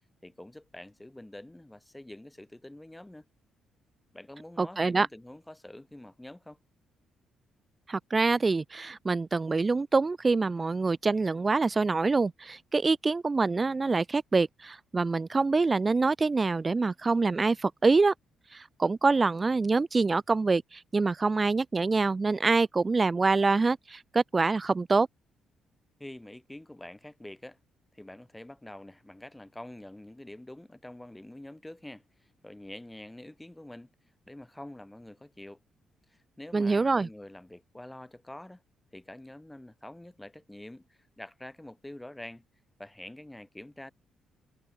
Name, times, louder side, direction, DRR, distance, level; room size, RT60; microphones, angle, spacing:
voice 1, 0.2-3.2 4.1-6.6 26.0-27.6 27.9-33.9 34.3-35.6 36.1-38.6 38.9-42.4 42.8-43.9, left 1 dB, 10° left, 1.7 m, -46 dB
voice 2, 4.6-5.1 7.9-18.1 18.5-25.1 36.5-37.1, right 3 dB, 25° right, 0.4 m, -25 dB
cardioid pair, 90°, 0 cm